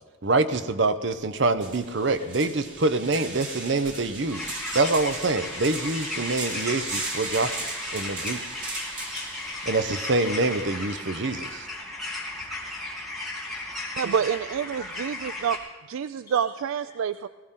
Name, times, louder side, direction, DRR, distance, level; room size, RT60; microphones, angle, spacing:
voice 1, 0.2-4.5 4.7-7.6 7.9-8.4 9.6-11.6, right 3 dB, 55° right, 10 dB, 0.7 m, -25 dB
sound 1, 1.1-1.2 1.6-11.1, right 2 dB, 40° right, 3.0 m, -37 dB
sound 2, 4.3-15.6, left 2 dB, ahead, 3.2 m, -35 dB
voice 2, 9.1-9.7 10.6-10.7 11.0-11.2 11.4-13.1 13.5-14.0 14.7-15.3 16.0-16.4 16.9-17.0, left 1 dB, 20° left, -9 dB, 5.6 m, -53 dB
voice 3, 14.0-15.6 15.9-17.3, right 7 dB, 80° right, 13 dB, 0.3 m, -27 dB
20.5 x 15.5 x 3.8 m, 1.3 s
head